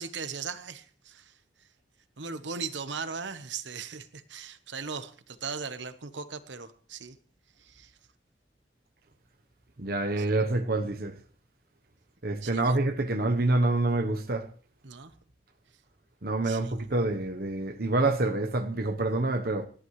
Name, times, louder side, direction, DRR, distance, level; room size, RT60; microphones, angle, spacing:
voice 1, 0.0-1.3 2.2-7.2 7.6-7.9 10.2-10.3 12.4-12.8 14.8-15.1 16.4-16.7, right 5 dB, 80° right, 1.1 m, -38 dB
voice 2, 9.8-11.2 12.2-14.5 16.2-19.7, right 2 dB, 55° right, 1.0 m, -27 dB
29.0 x 11.5 x 3.2 m
head